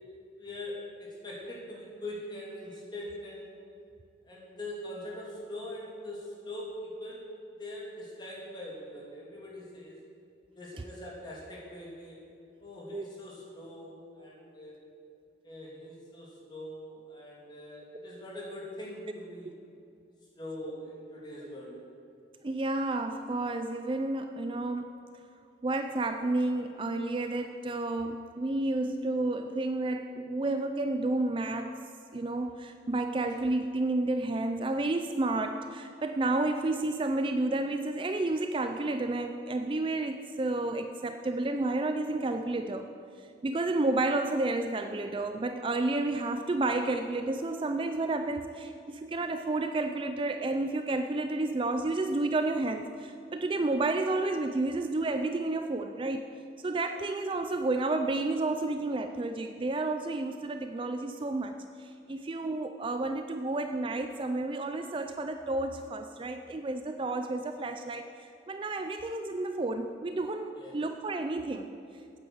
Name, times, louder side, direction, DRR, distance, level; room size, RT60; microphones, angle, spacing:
voice 1, 0.4-3.5 4.2-7.2 7.6-10.0 10.5-12.2 12.6-14.7 15.4-19.5 20.3-21.8 70.6-70.8, left 1 dB, 25° left, -5 dB, 2.9 m, -42 dB
voice 2, 22.4-24.9 25.6-31.8 32.1-42.9 43.4-56.2 56.6-71.7, right 2 dB, 30° right, 7 dB, 0.4 m, -31 dB
9.0 x 8.8 x 7.9 m, 2.6 s
head